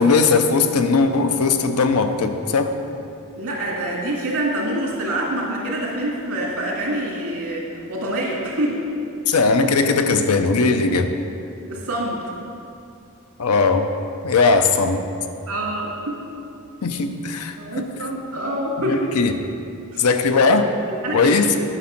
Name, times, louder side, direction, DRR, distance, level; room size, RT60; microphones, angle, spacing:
voice 1, 0.0-2.7 9.3-11.1 13.4-13.9 14.2-15.0 16.8-17.9 18.9-19.3 20.0-20.7 21.1-21.5, left 4 dB, 85° left, 7 dB, 0.7 m, -18 dB
voice 2, 3.4-8.9 11.7-12.2 14.4-14.7 15.5-16.2 17.6-19.1 19.9-20.1 20.9-21.3, right 1 dB, 70° right, -3 dB, 2.2 m, -26 dB
9.9 x 6.2 x 5.9 m, 2.7 s
head